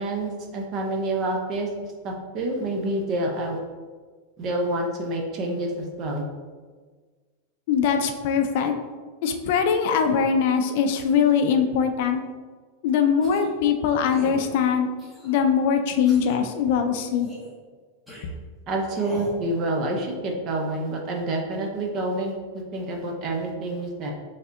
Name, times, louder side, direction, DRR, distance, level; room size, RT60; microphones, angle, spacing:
voice 1, 0.0-1.7 2.0-3.6 4.4-6.2 18.7-24.1, right 1 dB, 30° right, 2 dB, 0.6 m, -28 dB
voice 2, 7.7-8.7 9.2-12.2 12.8-14.9 15.2-17.3, left 7 dB, 55° left, 6 dB, 0.4 m, -22 dB
sound 1, 13.2-13.6 14.1-14.5 15.0-15.5 16.1-16.4 17.1-17.5 18.1-18.2 18.9-19.4, equal, 5° right, 1.0 m, -40 dB
5.2 x 3.3 x 2.5 m, 1.4 s
supercardioid pair, 160°, 0 cm